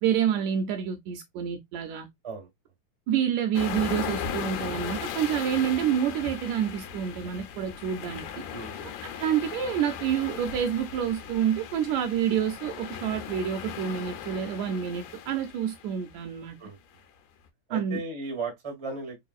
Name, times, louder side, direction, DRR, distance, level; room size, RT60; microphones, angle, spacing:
voice 1, 0.0-2.1 3.1-8.3 9.2-16.6 17.7-18.0, right 9 dB, 80° right, 1.7 m, -28 dB
sound 1, 3.5-16.1, left 8 dB, 80° left, 2.1 m, -37 dB
voice 2, 8.5-9.2 16.6-16.8 17.7-19.2, right 3 dB, 30° right, 0.5 m, -36 dB
4.7 x 2.5 x 2.4 m
omnidirectional pair, 3.6 m